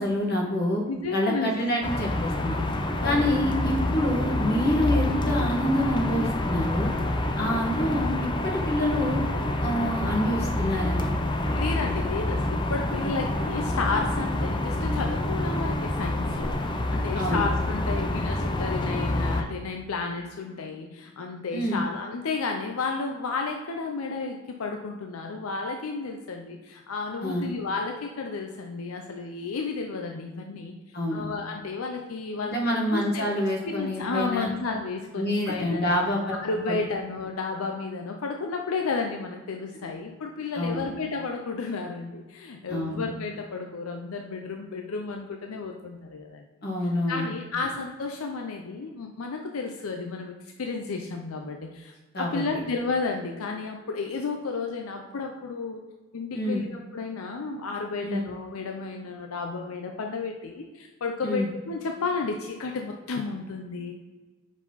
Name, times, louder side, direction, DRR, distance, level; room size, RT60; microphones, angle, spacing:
voice 1, 0.0-0.8 1.1-2.6 3.0-6.9 7.4-8.1 8.4-9.2 9.6-11.0 13.0-13.2 17.1-17.4 21.5-21.8 27.2-27.5 30.9-31.3 32.4-34.5 35.1-36.4 36.7-36.8 40.5-40.9 42.7-43.0 46.6-47.2 52.1-52.4 56.3-56.6 58.0-58.2 61.2-61.5, left 1 dB, 50° left, -1 dB, 1.6 m, -27 dB
voice 2, 0.9-1.5 3.0-3.3 11.5-30.7 31.1-32.6 32.9-33.3 33.6-36.0 36.4-46.5 47.1-55.8 56.1-64.0, left 4 dB, 85° left, 3 dB, 0.5 m, -32 dB
sound 1, 1.8-19.4, left 1 dB, 20° left, 0.5 m, -27 dB
5.5 x 4.9 x 4.0 m, 1.3 s
head